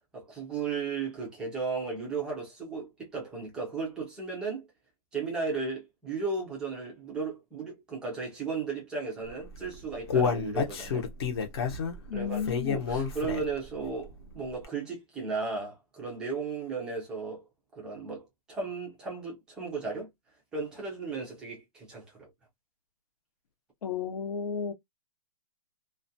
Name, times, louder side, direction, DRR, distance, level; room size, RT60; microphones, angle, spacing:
voice 1, 0.1-4.7 5.1-11.1 12.1-17.4 17.7-20.1 20.5-22.3, right 4 dB, 5° right, 0.4 m, -35 dB
Human voice, 9.5-13.7 14.1-14.2 14.6-14.7, left 6 dB, 40° left, 0.7 m, -29 dB
voice 2, 12.1-12.8 23.8-24.7, left 6 dB, 80° left, 0.8 m, -33 dB
2.4 x 2.2 x 2.6 m
hypercardioid pair, 175°, 19 cm